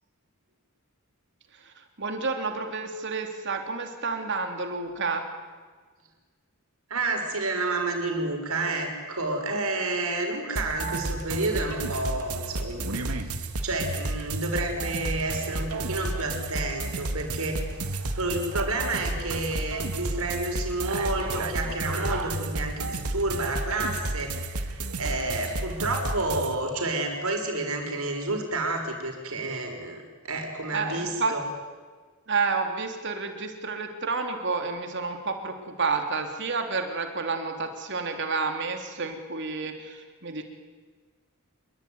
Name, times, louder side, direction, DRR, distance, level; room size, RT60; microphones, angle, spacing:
voice 1, 1.6-5.2 30.7-31.3 32.3-40.4, right 4 dB, 55° right, 5 dB, 3.4 m, -30 dB
voice 2, 6.9-31.4, right 2 dB, 75° right, 3 dB, 6.1 m, -30 dB
sound 1, 10.6-26.6, right 2 dB, 90° right, 2.2 m, -32 dB
26.5 x 21.5 x 9.7 m, 1.5 s
head